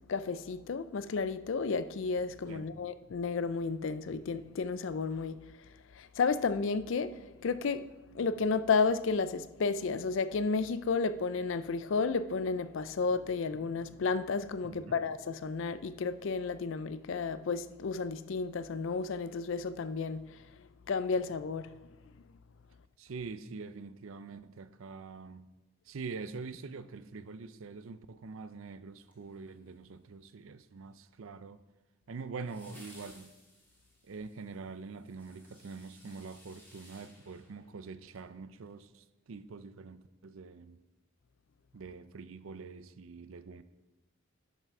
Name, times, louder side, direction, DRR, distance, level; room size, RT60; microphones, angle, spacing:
voice 1, 0.1-5.4 6.0-7.9 8.1-20.4 20.9-21.7, left 4 dB, 60° left, 0.4 m, -32 dB
voice 2, 2.5-2.9 14.6-15.0 23.0-25.5 25.9-31.6 32.1-33.3 34.0-40.8 41.7-43.6, right 4 dB, 70° right, 0.5 m, -45 dB
sound 1, 29.0-29.9 32.4-38.3 38.6-38.7, left 1 dB, 10° left, 1.7 m, -59 dB
10.5 x 5.8 x 4.7 m
head